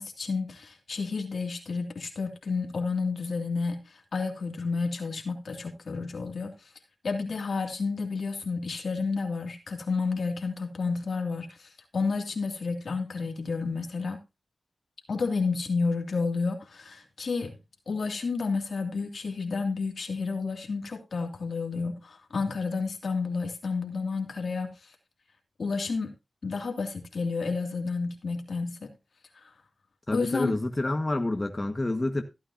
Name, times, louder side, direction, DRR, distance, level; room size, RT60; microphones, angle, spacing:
voice 1, 0.0-6.7 7.0-14.2 15.1-17.6 17.9-24.9 25.6-26.1 26.4-28.9 29.3-29.5 30.1-30.6, left 4 dB, 75° left, 2.5 m, -31 dB
voice 2, 30.1-32.2, left 2 dB, 35° left, 1.6 m, -28 dB
15.5 x 8.9 x 2.8 m
cardioid pair, 40°, 0 cm